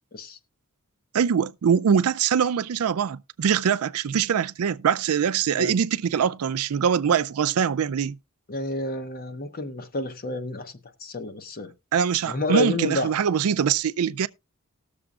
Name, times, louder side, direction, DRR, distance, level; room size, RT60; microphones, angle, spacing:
voice 1, 1.1-8.2 11.9-14.3, right 7 dB, 80° right, 0.4 m, -23 dB
voice 2, 8.5-10.7 11.0-11.7 12.3-13.1, left 2 dB, 45° left, 0.9 m, -29 dB
19.0 x 6.9 x 2.4 m
head